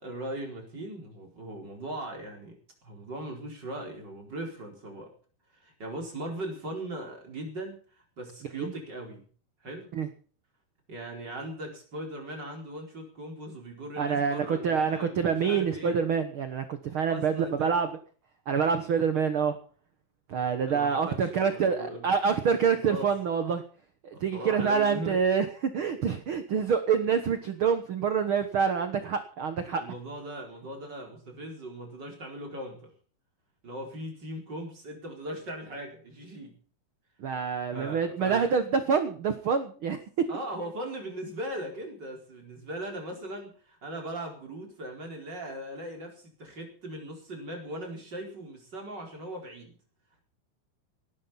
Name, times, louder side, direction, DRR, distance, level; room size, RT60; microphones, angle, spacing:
voice 1, 0.0-2.6 2.8-5.1 5.5-7.8 8.2-9.2 9.6-9.9 10.9-16.0 17.1-17.7 20.7-22.1 22.8-23.1 24.1-25.2 27.1-27.2 29.7-32.9 33.6-36.5 37.7-38.5 40.3-49.8, right 1 dB, 30° right, 1 dB, 4.8 m, -39 dB
voice 2, 14.0-17.9 18.5-19.6 20.3-23.6 24.0-29.8 37.2-40.0, right 6 dB, 75° right, 9 dB, 1.2 m, -26 dB
18.0 x 12.0 x 5.8 m, 0.43 s
omnidirectional pair, 4.2 m